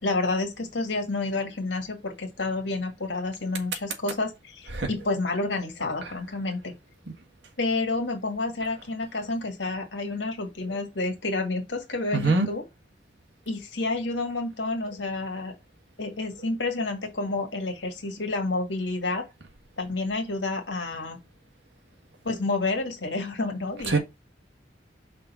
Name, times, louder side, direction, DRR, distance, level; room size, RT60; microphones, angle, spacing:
voice 1, 0.0-6.7 7.6-12.6 13.5-15.5 16.0-19.3 19.8-21.2 22.2-24.0, left 2 dB, 80° left, 2.0 m, -29 dB
voice 2, 12.1-12.5 23.9-24.0, right 3 dB, 75° right, 1.6 m, -22 dB
5.4 x 3.8 x 5.6 m
head